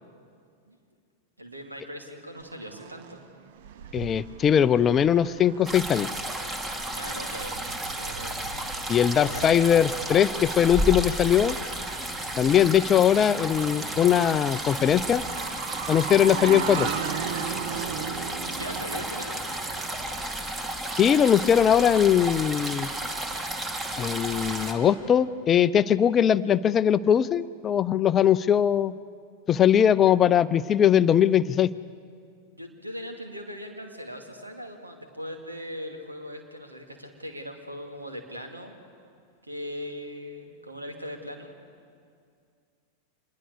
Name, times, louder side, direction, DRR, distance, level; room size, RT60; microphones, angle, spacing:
voice 1, 1.4-3.2 6.9-7.6 7.9-8.5 9.3-9.5 16.1-16.4 18.4-19.4 32.5-38.8 39.4-41.5, equal, 80° right, 4 dB, 2.5 m, -39 dB
sound 1, 2.4-20.4, right 8 dB, 50° right, 1.0 m, -39 dB
voice 2, 3.9-6.1 8.9-11.6 12.4-15.2 15.9-16.9 21.0-22.9 24.0-28.9 29.5-31.7, left 9 dB, 25° left, 16 dB, 0.5 m, -21 dB
sound 2, 5.7-24.7, right 1 dB, 20° right, 2.5 m, -33 dB
26.5 x 21.0 x 6.7 m, 2.2 s
figure-of-eight pair, 90°, 0 cm